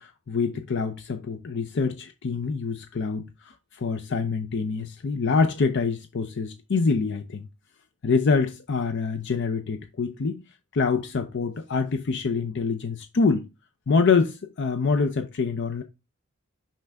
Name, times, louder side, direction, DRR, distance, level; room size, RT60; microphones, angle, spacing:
voice 1, 0.0-7.5 8.0-10.4 10.7-13.5 13.9-15.8, left 4 dB, 55° left, 0.5 m, -25 dB
5.8 x 5.6 x 3.4 m
head